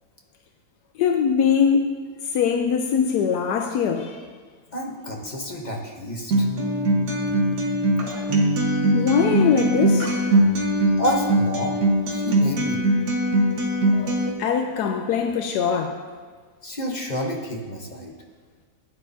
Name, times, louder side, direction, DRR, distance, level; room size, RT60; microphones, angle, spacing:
voice 1, 1.0-1.9 2.3-4.2 8.9-10.4 13.9-16.0, left 7 dB, 80° left, 5 dB, 1.2 m, -22 dB
voice 2, 4.7-6.5 11.0-11.8 12.1-12.8 16.6-18.1, equal, 30° left, 0 dB, 1.0 m, -29 dB
Acoustic guitar, 6.3-14.3, right 1 dB, 80° right, 1.7 m, -21 dB
15.0 x 9.2 x 2.7 m, 1.5 s
omnidirectional pair, 1.7 m